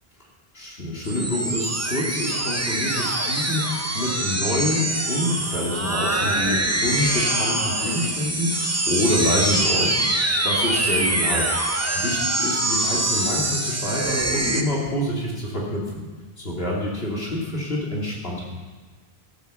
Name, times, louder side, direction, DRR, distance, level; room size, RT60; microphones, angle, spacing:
voice 1, 0.5-10.1 10.4-16.0 16.4-18.4, left 1 dB, 70° left, -4 dB, 2.8 m, -27 dB
sound 1, 1.0-14.6, right 1 dB, 15° right, 0.9 m, -24 dB
14.0 x 8.3 x 6.8 m, 1.4 s
omnidirectional pair, 1.0 m